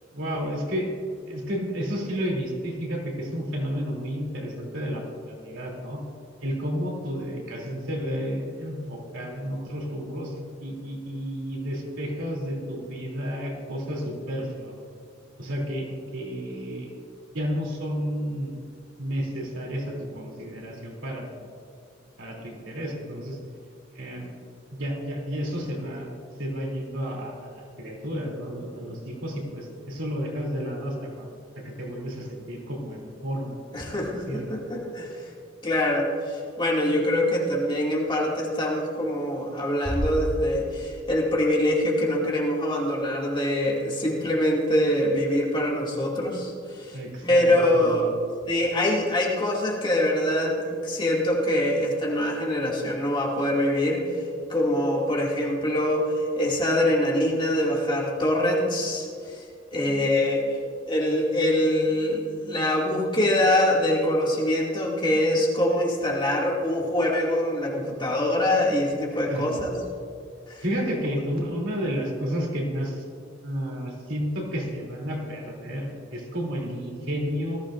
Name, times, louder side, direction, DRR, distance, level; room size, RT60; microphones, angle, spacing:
voice 1, 0.1-0.9 1.3-6.0 6.4-10.3 10.6-14.7 15.4-16.9 17.3-18.5 19.0-21.5 22.2-23.4 23.9-24.3 24.7-26.1 26.4-31.3 31.6-34.5 46.9-48.1 69.1-69.6 70.6-73.0 73.4-77.6, equal, 80° right, -2 dB, 3.0 m, -31 dB
voice 2, 33.7-35.2 35.6-47.0 47.2-48.1 48.4-54.1 54.5-59.4 59.7-60.6 60.9-69.7 70.5-70.6, left 1 dB, 25° left, -3 dB, 2.3 m, -24 dB
Bass drum, 39.8-41.3, equal, ahead, 2.8 m, -31 dB
19.5 x 14.0 x 2.6 m, 2.2 s
head